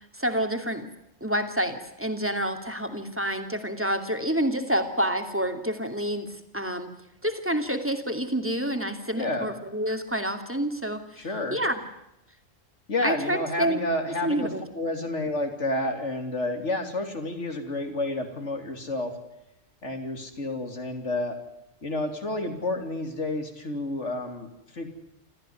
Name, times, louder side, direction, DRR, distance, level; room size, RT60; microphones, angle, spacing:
voice 1, 0.1-0.9 1.2-6.9 7.2-11.7 13.0-13.8 14.2-14.6, equal, 10° right, 6 dB, 2.7 m, -28 dB
voice 2, 9.1-9.5 11.2-11.6 12.9-19.1 19.8-21.4 21.8-24.9, left 2 dB, 65° left, 6 dB, 3.6 m, -30 dB
26.5 x 15.0 x 9.6 m, 0.87 s
omnidirectional pair, 1.3 m